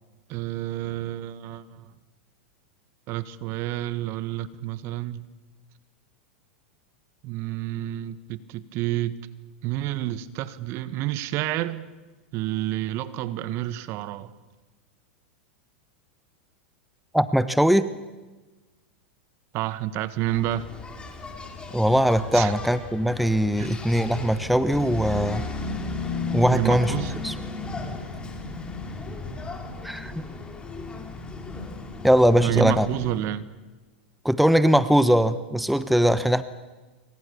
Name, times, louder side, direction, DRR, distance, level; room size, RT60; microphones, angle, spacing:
voice 1, 0.3-1.9 3.1-5.3 7.2-9.2 9.6-11.9 12.3-14.3 19.5-20.7 22.3-22.5 23.6-23.7 26.5-27.1 32.4-33.4, right 14 dB, 45° right, 14 dB, 1.6 m, -29 dB
voice 2, 17.1-17.9 21.7-25.4 26.3-26.9 27.2-27.3 29.8-30.1 32.0-32.9 34.2-36.4, equal, ahead, 13 dB, 1.0 m, -20 dB
Engine, 20.2-33.2, left 3 dB, 15° left, 4.3 m, -35 dB
28.5 x 24.5 x 7.1 m, 1.2 s
hypercardioid pair, 110°, 6 cm